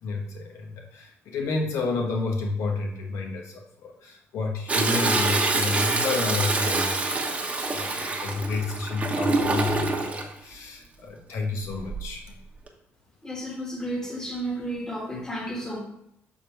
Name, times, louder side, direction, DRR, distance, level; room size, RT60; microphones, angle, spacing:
voice 1, 0.0-12.4, left 3 dB, 80° left, 1.2 m, -30 dB
Toilet flush, 4.7-10.2 11.7-12.2 12.7-12.8, right 3 dB, 25° right, 1.0 m, -26 dB
voice 2, 13.2-15.8, right 1 dB, 15° left, 1.6 m, -32 dB
6.9 x 3.6 x 4.5 m
cardioid pair, 110°, 5 cm